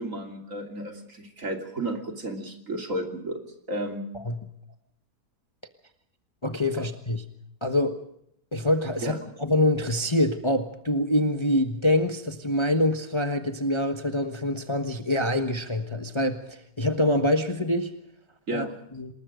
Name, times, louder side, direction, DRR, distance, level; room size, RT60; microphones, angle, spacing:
voice 1, 0.0-3.4 3.7-4.1 6.8-6.9 9.0-9.2 18.5-18.7, right 1 dB, 50° right, 4 dB, 3.4 m, -32 dB
voice 2, 6.4-7.2 7.6-8.0 8.5-17.9 18.5-18.7 18.9-19.1, left 1 dB, 20° left, 7 dB, 1.3 m, -25 dB
27.5 x 20.5 x 5.1 m, 0.73 s
omnidirectional pair, 1.7 m